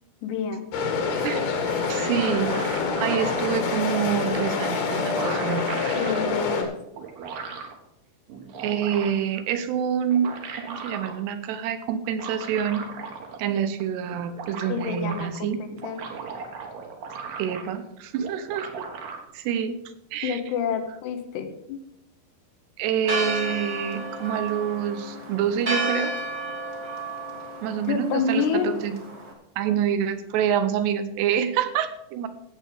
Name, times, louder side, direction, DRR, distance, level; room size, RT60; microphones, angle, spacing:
voice 1, 0.2-0.7 5.9-6.8 14.7-15.6 15.8-16.0 20.2-21.8 27.9-28.7, left 6 dB, 90° left, 6 dB, 3.4 m, -28 dB
sound 1, 0.7-6.6, left 4 dB, 70° left, 3.6 m, -26 dB
voice 2, 1.2-2.6 3.0-5.7 8.6-10.3 10.7-12.8 13.4-15.6 17.4-18.8 19.3-19.8 20.1-20.4 22.8-26.1 27.6-28.9 29.6-32.3, right 8 dB, 85° right, 10 dB, 3.0 m, -27 dB
sound 2, 1.9-3.6 4.6-4.7 4.9-6.3 6.9-7.8 8.3-9.3 10.0-11.2 12.0-13.5 13.8-13.9 14.1-15.2 15.7-17.8 18.2-19.2, right 5 dB, 65° right, 3.0 m, -37 dB
Church bell, 23.0-29.3, right 2 dB, 30° right, 1.1 m, -32 dB
15.5 x 7.8 x 5.0 m, 0.82 s
omnidirectional pair, 4.7 m